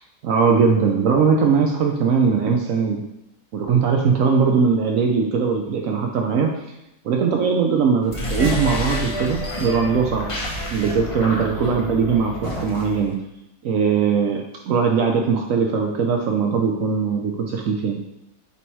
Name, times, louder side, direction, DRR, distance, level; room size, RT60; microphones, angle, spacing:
voice 1, 0.2-3.0 3.5-6.5 7.0-10.3 10.7-13.2 13.6-18.0, right 5 dB, 65° right, 2 dB, 1.0 m, -20 dB
sound 1, 8.0-13.1, equal, 25° left, 0.9 m, -28 dB
6.9 x 3.0 x 4.6 m, 0.86 s
omnidirectional pair, 1.6 m